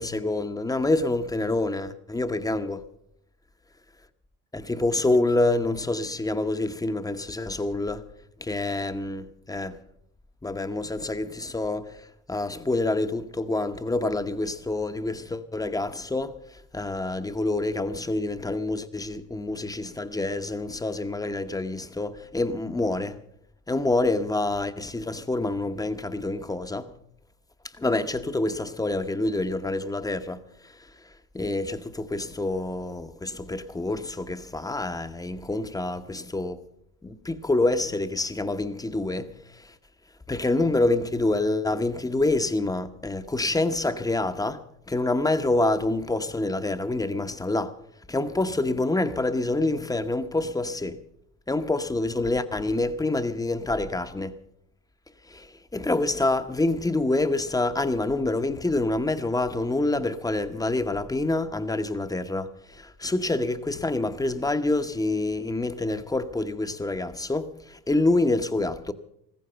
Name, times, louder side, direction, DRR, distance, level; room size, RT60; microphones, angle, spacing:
voice 1, 0.0-2.9 4.5-8.1 8.4-9.8 10.4-23.2 23.7-27.0 27.7-36.6 37.0-39.7 40.3-47.8 48.1-51.0 51.5-54.4 55.3-68.9, left 2 dB, 10° left, 0.9 m, -27 dB
15.0 x 14.5 x 5.7 m
supercardioid pair, 90°, 34 cm